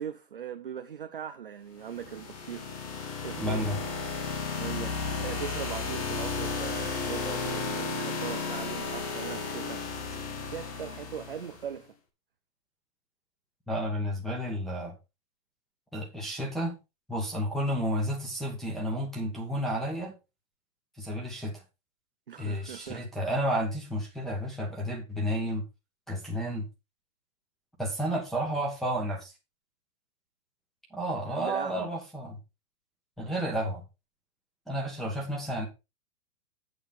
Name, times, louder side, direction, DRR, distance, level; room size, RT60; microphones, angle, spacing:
voice 1, 0.0-2.7 3.2-3.7 4.5-9.8 10.5-11.9 22.3-23.3 31.3-31.9, right 8 dB, 35° right, 0.5 m, -40 dB
sound 1, 1.8-11.7, left 4 dB, 20° left, 1.0 m, -34 dB
voice 2, 3.4-3.8 13.7-14.9 15.9-16.7 17.1-20.1 21.0-21.5 22.4-25.6 26.1-26.7 27.8-29.3 30.9-32.4 33.2-33.8 34.7-35.7, equal, ahead, 1.4 m, -31 dB
8.5 x 8.3 x 3.7 m
hypercardioid pair, 170°, 48 cm